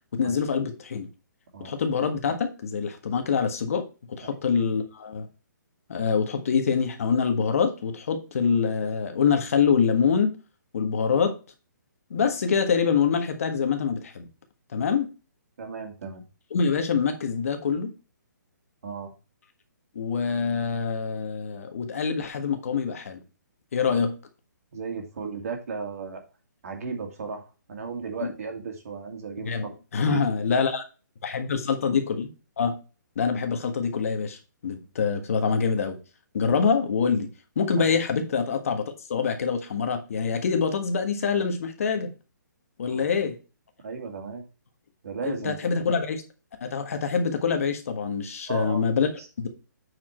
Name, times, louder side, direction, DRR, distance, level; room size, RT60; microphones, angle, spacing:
voice 1, 0.1-1.1 1.6-5.3 5.9-10.4 10.7-11.3 12.1-14.3 14.7-15.1 16.5-17.9 19.9-23.2 23.7-24.2 28.2-28.3 29.4-29.7 29.9-30.8 31.2-32.3 32.6-32.8 33.2-34.4 34.6-36.0 36.3-37.3 37.5-42.1 42.8-43.4 45.2-46.2 46.6-49.1 49.4-49.5, left 6 dB, 45° left, 6 dB, 1.5 m, -25 dB
voice 2, 15.6-16.2 18.8-19.1 24.7-26.2 26.6-29.7 30.1-30.2 36.4-36.6 42.9-43.0 43.8-44.4 45.0-45.7 48.5-48.8 49.2-49.3, right 5 dB, 50° right, 3 dB, 2.5 m, -35 dB
8.5 x 4.9 x 4.3 m, 0.32 s
hypercardioid pair, 170°, 10 cm